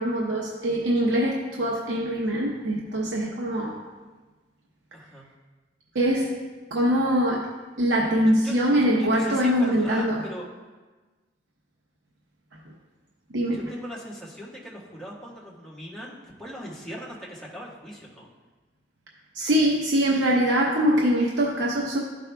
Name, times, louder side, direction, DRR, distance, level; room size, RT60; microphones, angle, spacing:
voice 1, 0.0-3.8 5.9-6.4 6.7-7.5 7.8-10.2 13.3-13.7 19.3-22.0, equal, 90° right, -2 dB, 0.8 m, -23 dB
voice 2, 4.9-5.2 8.2-10.4 13.5-18.3, equal, 5° left, -6 dB, 1.4 m, -39 dB
13.0 x 5.3 x 2.3 m, 1.3 s
head